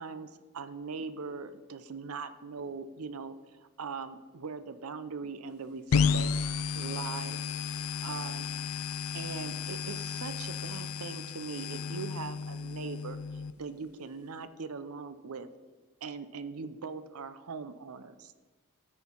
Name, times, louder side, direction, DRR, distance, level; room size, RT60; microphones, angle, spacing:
voice 1, 0.0-6.3 6.7-7.4 8.0-8.5 9.1-15.5 16.0-18.3, right 5 dB, 80° right, 12 dB, 0.6 m, -41 dB
sound 1, 5.9-13.5, left 6 dB, 75° left, 0.4 m, -33 dB
13.0 x 4.5 x 5.3 m, 1.3 s
head